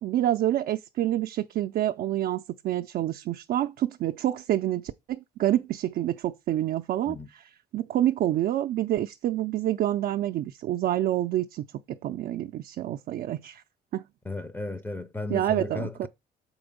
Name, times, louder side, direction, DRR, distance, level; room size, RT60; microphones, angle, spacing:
voice 1, 0.0-7.2 7.7-13.6 13.9-14.0 15.3-16.1, right 13 dB, 60° right, 0.4 m, -27 dB
voice 2, 14.2-16.1, left 2 dB, 10° left, 0.5 m, -34 dB
6.8 x 4.4 x 5.2 m
cardioid pair, 110°, 17 cm